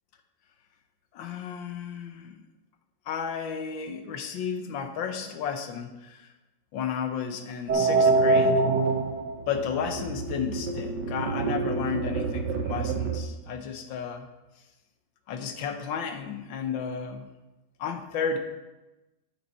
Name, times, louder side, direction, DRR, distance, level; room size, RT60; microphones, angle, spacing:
voice 1, 1.1-2.3 3.1-6.3 6.7-8.6 9.5-14.3 15.3-17.3 17.8-18.4, left 6 dB, 85° left, 7 dB, 1.6 m, -33 dB
sound 1, 7.7-13.2, right 3 dB, 70° right, 1.4 m, -25 dB
9.0 x 7.7 x 4.2 m, 1.0 s
omnidirectional pair, 2.0 m